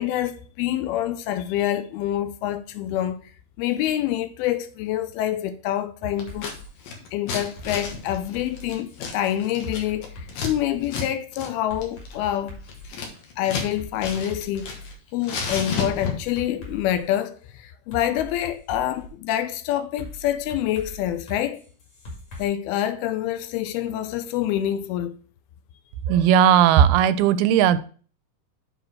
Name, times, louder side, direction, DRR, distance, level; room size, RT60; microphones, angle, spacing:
voice 1, 0.0-3.2 3.6-6.5 7.1-12.6 13.4-14.8 15.1-21.6 22.4-25.2, left 12 dB, 85° left, 2.5 m, -26 dB
sound 1, 6.0-6.7 7.6-9.0 9.6-10.8 11.7-13.0 13.5-14.9 15.8-17.2 17.9-19.1 20.0-22.4, left 1 dB, 50° left, 3.1 m, -40 dB
Scissors, 6.2-6.6 6.8-10.5 10.8-11.1 11.3-11.5 11.8-13.7 14.0-14.9 15.2-16.4, left 5 dB, 70° left, 3.0 m, -32 dB
voice 2, 26.1-27.8, right 9 dB, 90° right, 2.5 m, -17 dB
7.3 x 4.0 x 6.0 m
omnidirectional pair, 4.3 m